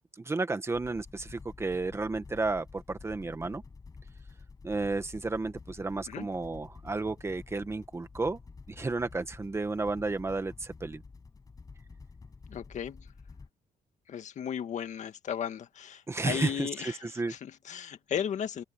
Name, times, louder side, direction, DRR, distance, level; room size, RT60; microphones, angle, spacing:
voice 1, 0.2-3.6 4.6-8.4 8.7-11.0 16.1-17.3, right 3 dB, 15° right, 1.5 m, -32 dB
sound 1, 0.7-13.5, left 4 dB, 25° left, 5.2 m, -50 dB
voice 2, 12.5-13.1 14.1-18.6, left 9 dB, 50° left, 1.8 m, -35 dB
open air
cardioid pair, 150°, 15 cm